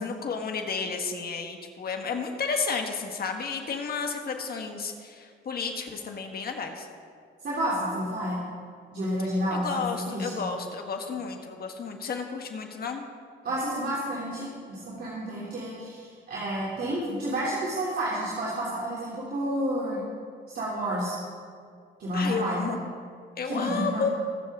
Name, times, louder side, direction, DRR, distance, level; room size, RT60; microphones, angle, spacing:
voice 1, 0.0-6.9 9.5-13.0 22.1-22.8 23.4-24.1, left 5 dB, 50° left, 4 dB, 1.6 m, -32 dB
voice 2, 7.4-8.4 8.9-10.4 13.4-20.0 20.5-21.2 22.0-22.7 23.4-24.1, right 1 dB, 55° right, -7 dB, 3.0 m, -30 dB
21.5 x 7.4 x 3.7 m, 2.1 s
cardioid pair, 90°, 20 cm